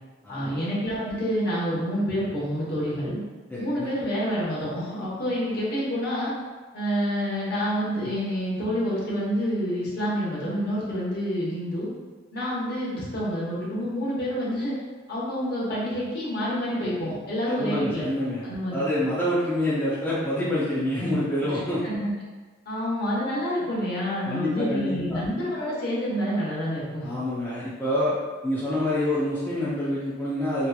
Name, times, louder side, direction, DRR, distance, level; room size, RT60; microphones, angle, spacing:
voice 1, 0.3-3.2 3.6-6.3 6.7-11.9 12.3-14.8 15.1-18.1 18.4-18.8 21.8-22.1 22.7-27.2, equal, 55° left, -7 dB, 0.9 m, -28 dB
voice 2, 3.5-3.9 17.5-18.4 18.7-21.8 24.3-25.2 27.0-28.1 28.4-30.7, left 1 dB, 10° left, -10 dB, 0.4 m, -27 dB
2.8 x 2.3 x 2.2 m, 1.4 s
head